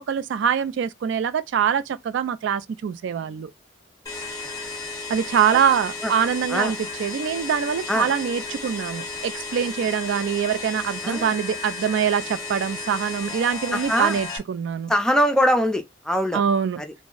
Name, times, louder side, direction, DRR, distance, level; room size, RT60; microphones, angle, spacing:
voice 1, 0.0-3.5 5.1-14.9 16.3-16.8, right 7 dB, 70° right, 0.3 m, -24 dB
sound 1, 4.1-14.4, left 3 dB, 20° left, 0.9 m, -34 dB
voice 2, 11.0-11.3 13.7-14.2 14.9-16.4 16.8-16.9, equal, 5° left, 0.4 m, -22 dB
2.5 x 2.0 x 3.7 m
head